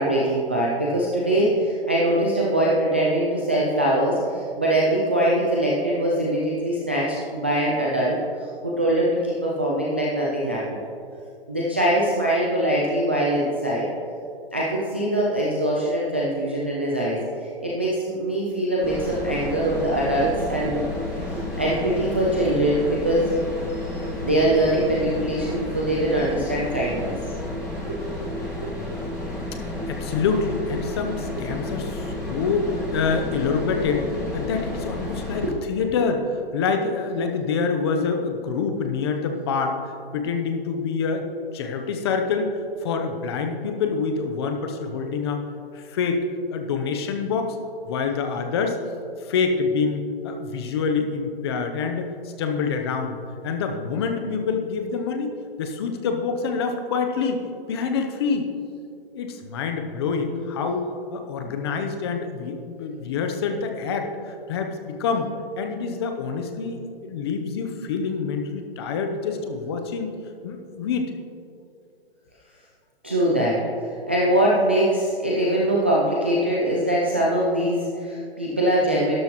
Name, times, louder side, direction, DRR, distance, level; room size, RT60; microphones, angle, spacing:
voice 1, 0.0-8.2 8.6-10.8 11.5-13.9 14.5-20.8 21.6-23.2 24.2-27.2 27.8-28.2 28.6-28.7 32.2-32.3 35.4-35.9 73.0-73.6 74.1-79.1, right 1 dB, 10° right, -5 dB, 0.3 m, -22 dB
sound 1, 18.8-35.5, left 2 dB, 10° left, 2.5 m, -31 dB
voice 2, 29.9-39.8 40.1-41.3 41.5-45.4 45.7-46.3 46.5-47.6 47.9-48.8 49.2-53.2 53.4-55.3 55.6-57.4 57.7-58.5 59.1-65.3 65.6-70.1 70.4-71.1, left 5 dB, 25° left, 5 dB, 0.7 m, -26 dB
12.0 x 12.0 x 3.0 m, 2.4 s
hypercardioid pair, 160°, 30 cm